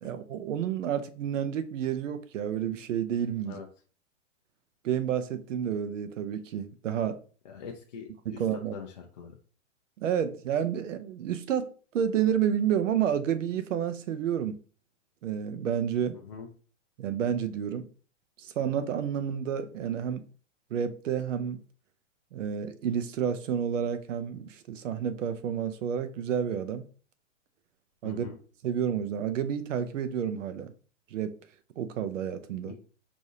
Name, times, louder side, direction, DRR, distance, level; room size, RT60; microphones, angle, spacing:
voice 1, 0.0-3.6 4.8-7.2 8.4-8.7 10.0-14.6 15.2-16.2 17.0-17.9 18.4-20.2 20.7-21.6 22.3-26.8 28.0-28.3 28.6-30.7 31.1-31.3 31.8-32.7, right 8 dB, 80° right, 0.6 m, -30 dB
voice 2, 7.4-9.4 16.1-16.5 28.0-28.4 32.6-32.8, left 6 dB, 40° left, 0.4 m, -43 dB
4.9 x 2.6 x 2.7 m
hypercardioid pair, 165°, 37 cm